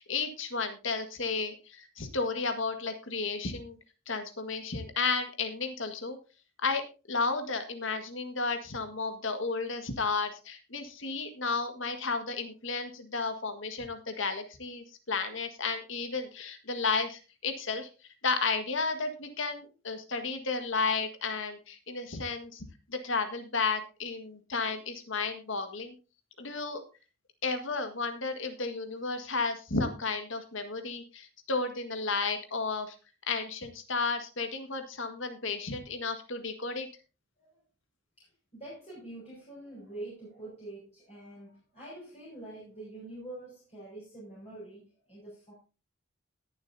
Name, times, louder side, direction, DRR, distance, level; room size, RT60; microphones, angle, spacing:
voice 1, 0.0-3.8 4.1-6.2 6.6-17.9 18.2-22.6 22.9-25.9 26.4-26.8 27.4-33.0 33.3-36.9, left 4 dB, 65° left, 7 dB, 1.7 m, -33 dB
voice 2, 38.2-45.5, right 2 dB, 30° left, -7 dB, 6.1 m, -46 dB
20.0 x 7.3 x 2.7 m, 0.31 s
head